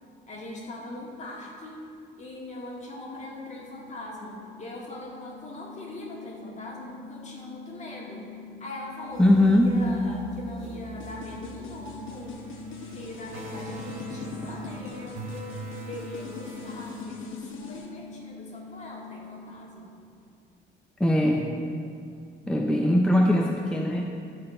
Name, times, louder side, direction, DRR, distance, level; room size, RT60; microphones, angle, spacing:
voice 1, 0.3-1.8 2.2-8.2 8.6-9.4 9.6-12.4 12.9-15.6 15.9-19.9, left 1 dB, 35° left, -3 dB, 2.0 m, -41 dB
sound 1, 3.1-20.6, left 4 dB, 65° left, 0.5 m, -46 dB
sound 2, 9.1-17.0, right 4 dB, 80° right, 1.3 m, -42 dB
voice 2, 9.2-9.8 21.0-21.5 22.5-24.0, left 1 dB, 5° left, 0 dB, 0.6 m, -21 dB
sound 3, 11.0-17.8, left 5 dB, 85° left, 1.0 m, -41 dB
12.5 x 4.4 x 4.3 m, 2.4 s
cardioid pair, 90°, 20 cm